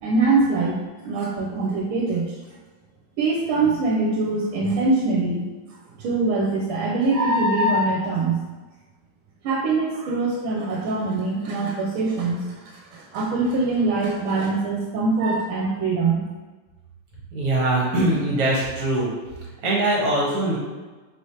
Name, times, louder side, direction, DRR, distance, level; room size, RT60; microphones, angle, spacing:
voice 1, 0.0-2.4 3.2-5.4 6.0-8.4 9.4-16.2, right 3 dB, 80° right, -2 dB, 1.4 m, -23 dB
voice 2, 17.3-19.1 19.6-20.6, right 1 dB, 50° right, -4 dB, 1.4 m, -22 dB
5.0 x 3.1 x 2.8 m, 1.3 s
omnidirectional pair, 2.3 m